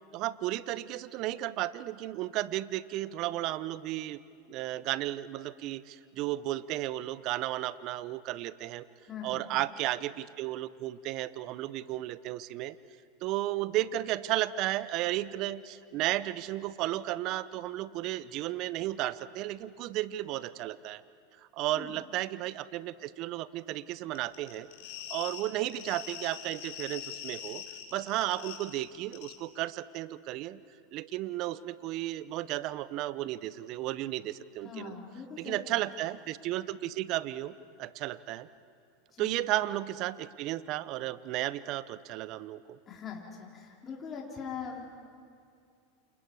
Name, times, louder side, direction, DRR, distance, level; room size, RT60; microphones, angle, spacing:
voice 1, 0.1-4.2 4.5-8.9 9.2-12.8 13.2-21.0 21.5-24.7 25.1-27.6 27.9-30.6 30.9-34.9 35.4-37.5 37.8-38.5 39.2-42.8, right 15 dB, 50° right, 17 dB, 0.8 m, -34 dB
voice 2, 9.0-9.4 21.7-22.0 34.6-35.9 39.1-39.3 42.9-44.8, left 6 dB, 30° left, -2 dB, 4.1 m, -42 dB
sound 1, 24.1-28.8 29.1-29.3, left 10 dB, 65° left, 3.4 m, -43 dB
28.5 x 28.5 x 4.8 m, 2.3 s
hypercardioid pair, 95°, 0 cm